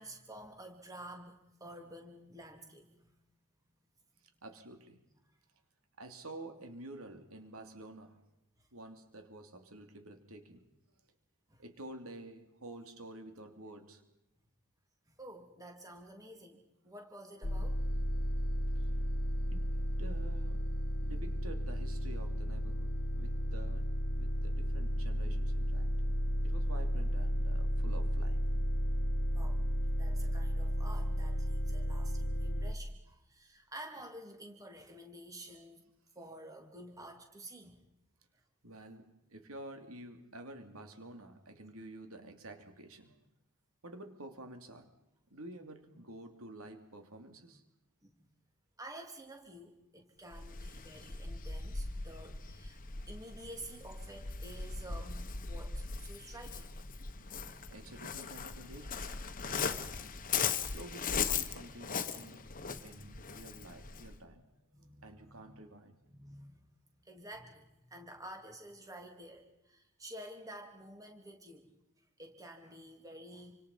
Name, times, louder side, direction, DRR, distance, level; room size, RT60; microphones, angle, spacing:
voice 1, 0.0-3.1 5.2-5.4 8.6-8.7 11.5-11.6 15.1-17.8 29.3-29.7 30.0-35.9 36.1-37.8 48.0-48.3 48.8-52.8 53.1-56.7 64.7-65.4 66.1-66.6 67.0-73.6, right 1 dB, 15° right, 3 dB, 3.3 m, -50 dB
voice 2, 4.4-5.0 6.0-8.2 8.7-10.7 11.6-14.0 19.5-19.7 20.0-20.7 21.0-23.9 24.2-26.1 26.4-28.4 38.6-43.2 43.8-44.9 45.3-47.6 57.7-59.1 59.5-59.8 60.7-62.5 62.8-64.4 65.0-66.0, right 1 dB, 70° right, 6 dB, 3.0 m, -50 dB
sound 1, 17.4-32.7, equal, 60° left, 1.4 m, -33 dB
Waves surf, 50.3-64.2, left 6 dB, 40° left, 1.4 m, -39 dB
28.5 x 26.0 x 5.5 m, 0.87 s
head